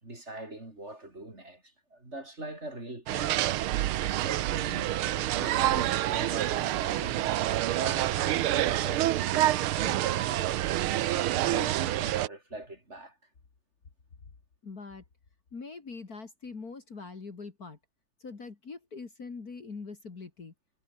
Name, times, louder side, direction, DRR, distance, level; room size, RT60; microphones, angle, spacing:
voice 1, 0.0-3.4 4.2-5.0 5.4-10.5 11.1-13.2, right 1 dB, 30° right, 5.3 m, -43 dB
sound 1, 3.1-12.3, right 14 dB, 80° right, 1.7 m, -27 dB
voice 2, 14.6-15.0 15.5-17.8 18.2-20.5, left 4 dB, 45° left, 2.9 m, -43 dB
omnidirectional pair, 2.3 m